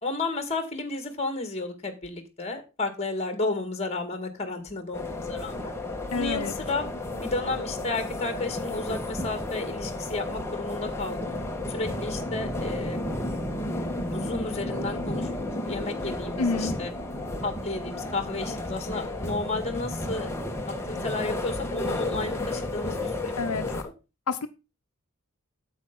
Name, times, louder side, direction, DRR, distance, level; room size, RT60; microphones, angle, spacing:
voice 1, 0.0-5.7 6.1-11.3 11.7-13.1 14.1-15.3 15.7-16.9 17.4-20.3 20.7-23.5, left 3 dB, 30° left, 2.0 m, -32 dB
sound 1, 4.9-23.8, left 1 dB, 10° left, 1.5 m, -32 dB
voice 2, 6.1-6.5 16.4-16.7 23.4-23.7 24.3-24.5, left 4 dB, 90° left, 0.8 m, -28 dB
9.2 x 7.9 x 3.9 m
head